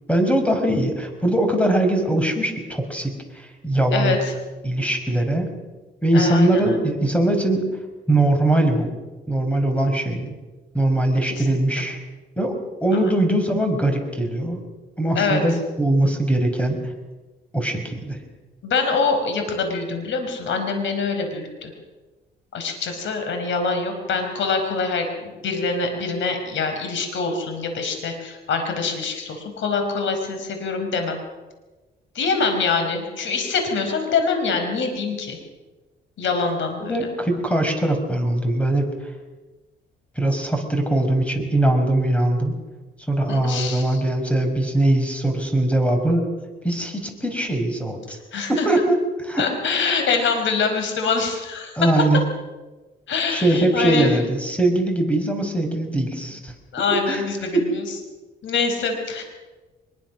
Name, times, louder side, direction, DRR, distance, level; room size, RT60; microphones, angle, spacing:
voice 1, 0.1-4.2 4.6-5.5 6.0-7.6 8.1-8.9 9.3-10.4 10.7-12.0 12.4-14.6 15.0-16.8 17.5-18.2 36.8-39.1 40.2-42.6 43.1-46.3 46.6-48.2 48.5-49.0 49.3-49.4 51.8-52.2 53.3-56.5 57.1-57.2 57.5-57.7, right 1 dB, 5° left, 5 dB, 5.3 m, -21 dB
voice 2, 3.9-4.3 6.1-6.6 11.3-11.6 12.9-13.1 15.1-15.4 18.6-21.7 22.5-31.2 32.1-35.4 36.2-37.0 43.3-44.0 48.3-48.7 49.4-52.1 53.1-54.3 56.7-57.9 58.4-59.2, left 4 dB, 70° left, 5 dB, 4.8 m, -24 dB
23.5 x 22.0 x 6.2 m, 1.2 s
cardioid pair, 90°, 20 cm